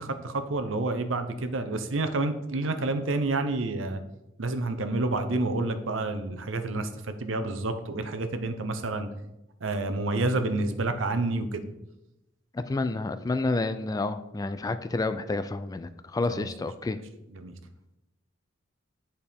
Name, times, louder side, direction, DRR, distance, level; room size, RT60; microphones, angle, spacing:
voice 1, 0.0-4.0 4.4-9.1 9.6-11.6 16.3-16.5 17.3-17.5, right 2 dB, 80° right, 8 dB, 0.7 m, -29 dB
voice 2, 12.5-17.0, left 3 dB, 20° left, 11 dB, 0.3 m, -29 dB
9.8 x 4.3 x 3.5 m, 0.89 s
head